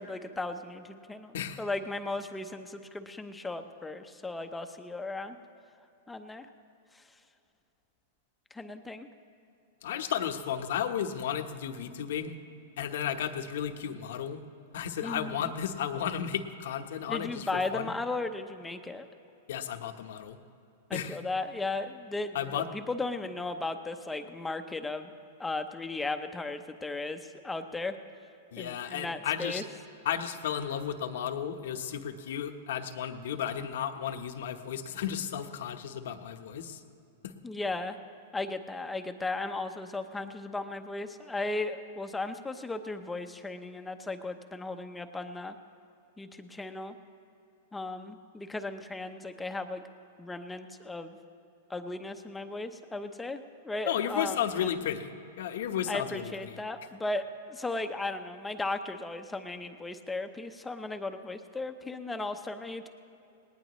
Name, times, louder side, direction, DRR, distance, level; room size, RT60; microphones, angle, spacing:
voice 1, 0.0-5.4 6.1-6.5 6.9-7.1 8.5-9.1 15.0-15.5 17.1-19.1 20.9-25.1 25.4-27.9 28.6-29.6 37.4-38.0 38.3-45.6 46.2-46.9 47.7-49.8 50.2-51.2 51.7-54.7 55.9-62.9, left 2 dB, 5° left, 7 dB, 0.8 m, -36 dB
voice 2, 9.8-12.3 12.8-14.4 14.7-17.9 19.5-20.4 20.9-21.2 22.3-22.7 28.5-29.6 30.0-36.8 37.2-37.3 53.9-55.1 55.4-56.6, left 9 dB, 70° left, 7 dB, 1.1 m, -33 dB
19.5 x 19.0 x 3.1 m, 2.8 s
hypercardioid pair, 145°, 0 cm